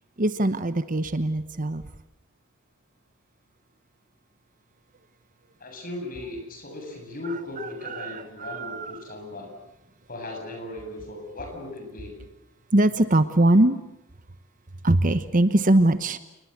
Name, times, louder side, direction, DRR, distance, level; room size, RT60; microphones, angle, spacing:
voice 1, 0.2-1.8 8.0-8.9 12.7-13.8 14.8-16.2, right 1 dB, 35° right, 12 dB, 1.0 m, -21 dB
voice 2, 5.6-9.5 10.1-12.1, left 2 dB, 40° left, 3 dB, 7.7 m, -37 dB
29.0 x 21.0 x 8.2 m, 0.88 s
head